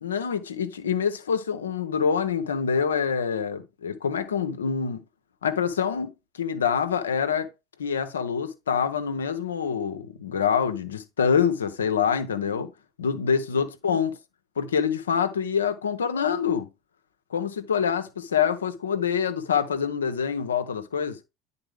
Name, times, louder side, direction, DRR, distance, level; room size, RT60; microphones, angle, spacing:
voice 1, 0.0-5.0 5.4-6.1 6.4-7.5 7.8-12.7 13.0-14.2 14.6-16.7 17.3-21.2, left 7 dB, 85° left, 0.8 m, -26 dB
10.0 x 4.1 x 3.5 m
hypercardioid pair, 75°, 0 cm